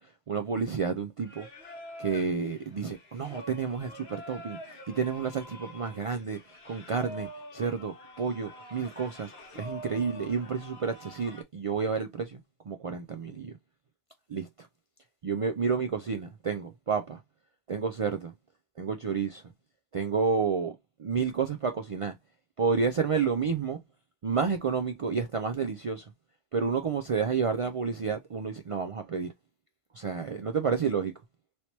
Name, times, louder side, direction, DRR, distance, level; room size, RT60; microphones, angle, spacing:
voice 1, 0.0-1.5 2.0-12.4 12.7-13.6 14.3-14.7 15.2-17.2 17.7-18.3 18.8-19.4 19.9-22.2 22.6-23.8 24.2-26.1 26.5-29.3 29.9-31.2, right 5 dB, 60° right, 0.3 m, -30 dB
Singing, 1.2-11.4, equal, 70° left, 1.1 m, -46 dB
3.1 x 2.9 x 2.8 m
omnidirectional pair, 1.1 m